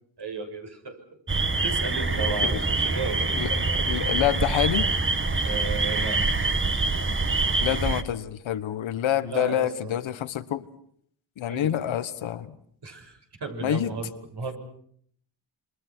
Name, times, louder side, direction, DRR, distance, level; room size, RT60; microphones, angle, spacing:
voice 1, 0.2-1.0 1.6-3.2 5.4-6.2 9.2-10.0 11.5-11.7 12.8-14.6, right 3 dB, 60° right, 4 dB, 6.6 m, -34 dB
sound 1, 1.3-8.0, right 3 dB, 25° right, 1.7 m, -25 dB
voice 2, 3.3-4.9 7.6-10.6 11.4-12.6 13.6-13.9, left 11 dB, 85° left, 12 dB, 1.4 m, -27 dB
27.5 x 25.0 x 6.2 m, 0.64 s
cardioid pair, 80°, 45 cm